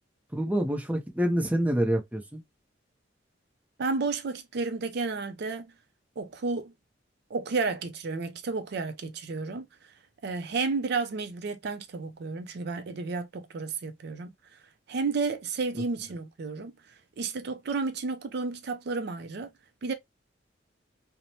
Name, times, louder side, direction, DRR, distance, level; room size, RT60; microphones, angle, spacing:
voice 1, 0.3-2.4 15.7-15.8, equal, 10° right, 0.6 m, -27 dB
voice 2, 3.8-5.7 6.2-6.7 7.3-9.7 10.2-14.3 14.9-16.7 17.2-19.5 19.8-19.9, right 4 dB, 60° right, 0.4 m, -32 dB
3.0 x 2.0 x 2.6 m
head